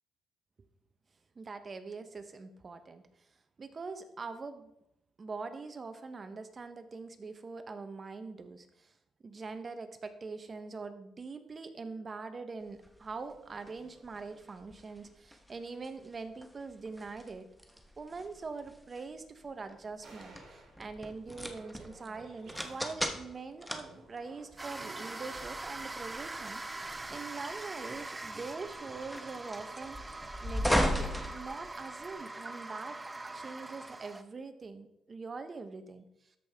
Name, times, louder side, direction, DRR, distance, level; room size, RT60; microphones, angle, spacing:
voice 1, 1.4-3.0 3.6-4.7 5.2-8.9 9.2-17.5 18.0-33.0 33.3-36.0, right 4 dB, 35° right, 9 dB, 0.9 m, -43 dB
sound 1, 12.8-32.1, equal, ahead, 1.0 m, -39 dB
sound 2, 20.0-25.4, right 2 dB, 65° right, 3.5 m, -56 dB
sound 3, 24.6-34.2, right 2 dB, 20° right, 0.6 m, -43 dB
13.0 x 5.4 x 3.5 m, 0.81 s
cardioid pair, 90°, 0 cm